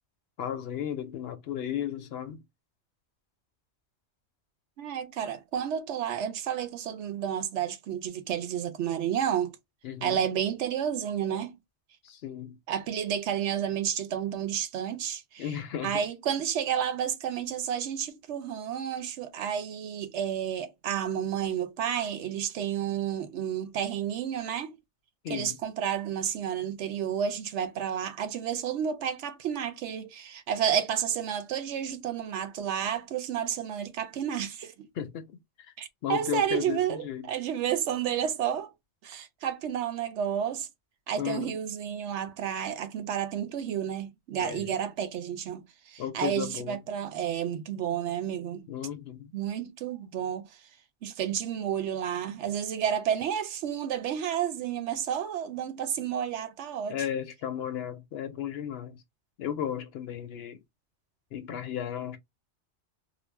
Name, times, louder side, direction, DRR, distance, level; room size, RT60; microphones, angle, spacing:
voice 1, 0.4-2.4 9.8-10.2 12.0-12.6 15.4-16.0 25.2-25.6 34.9-35.3 35.6-35.7 36.0-37.3 41.2-41.6 44.4-44.7 46.0-46.8 48.7-49.3 56.9-59.0 59.4-60.6 61.3-62.2, left 9 dB, 65° left, 0.8 m, -34 dB
voice 2, 4.8-9.5 10.0-11.6 12.7-15.5 15.8-24.7 25.3-34.9 35.8-38.7 39.0-40.7 41.1-48.6 49.3-50.5 51.0-57.0, right 9 dB, 90° right, 0.9 m, -31 dB
2.5 x 2.1 x 3.2 m
omnidirectional pair, 1.2 m